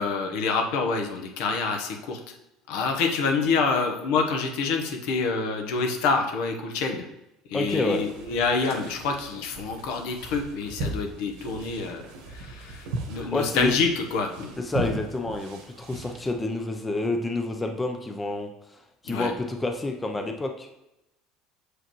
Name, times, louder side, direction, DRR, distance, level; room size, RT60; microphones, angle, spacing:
voice 1, 0.0-2.3 2.7-7.0 7.5-12.0 12.3-14.5 19.1-19.3, left 4 dB, 75° left, 4 dB, 0.9 m, -27 dB
voice 2, 7.5-8.0 13.1-13.7 14.6-18.5 19.0-20.7, left 2 dB, 10° left, 4 dB, 0.5 m, -28 dB
sound 1, 7.6-16.3, right 1 dB, 85° right, 1.3 m, -38 dB
6.5 x 4.9 x 3.0 m, 0.92 s
cardioid pair, 140°, 0 cm